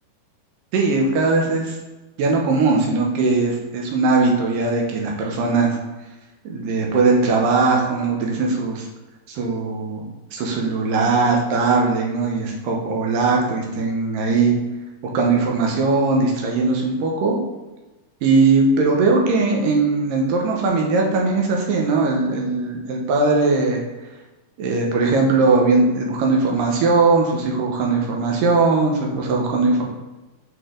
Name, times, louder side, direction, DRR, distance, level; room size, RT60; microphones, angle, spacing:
voice 1, 0.7-1.8 2.2-5.8 6.4-8.9 9.3-10.0 10.3-14.5 15.1-17.4 18.2-23.8 24.6-29.8, right 3 dB, 70° right, 0 dB, 2.4 m, -19 dB
6.3 x 4.9 x 3.8 m, 1.1 s
omnidirectional pair, 4.5 m